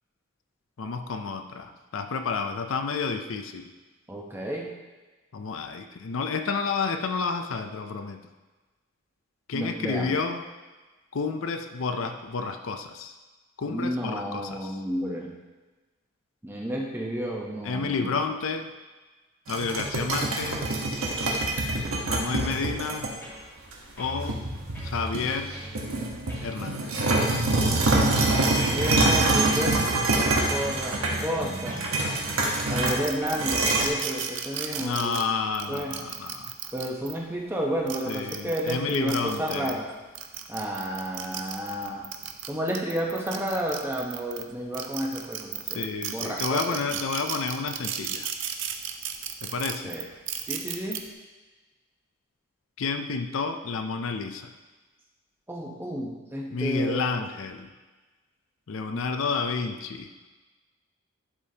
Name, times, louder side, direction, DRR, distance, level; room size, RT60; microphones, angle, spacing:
voice 1, 0.8-3.7 5.3-8.2 9.5-10.5 11.1-13.2 13.6-14.8 17.6-18.7 19.5-20.6 22.0-23.1 24.0-24.4 24.8-25.5 26.4-27.1 34.8-36.5 38.1-39.8 45.6-48.3 49.4-49.9 52.8-54.5 56.5-57.7 58.7-60.1, left 4 dB, 70° left, 6 dB, 0.5 m, -30 dB
voice 2, 4.1-4.7 9.5-10.2 13.7-15.3 16.4-18.2 28.7-29.9 30.3-31.8 32.7-35.2 35.7-35.9 36.7-39.9 40.5-42.1 42.5-46.8 49.8-50.0 50.4-51.0 55.5-57.2 58.9-59.1, equal, 10° right, -2 dB, 0.9 m, -31 dB
sound 1, 19.5-23.1 23.7-23.8 24.3-25.4 25.7-33.9, right 2 dB, 80° right, 1.1 m, -25 dB
sound 2, 22.1-22.7 23.2-23.7 24.0-25.8 26.3-26.5 27.0-27.3 27.8-28.9 29.4-29.8 30.1-31.9 32.4-32.7 33.2-33.4 34.0-34.2, right 1 dB, 10° left, 1.7 m, -40 dB
sound 3, 32.9-37.1 37.7-39.7 40.1-44.4 44.7-51.0, right 9 dB, 55° right, 0.5 m, -34 dB
11.0 x 5.1 x 2.8 m, 1.2 s
head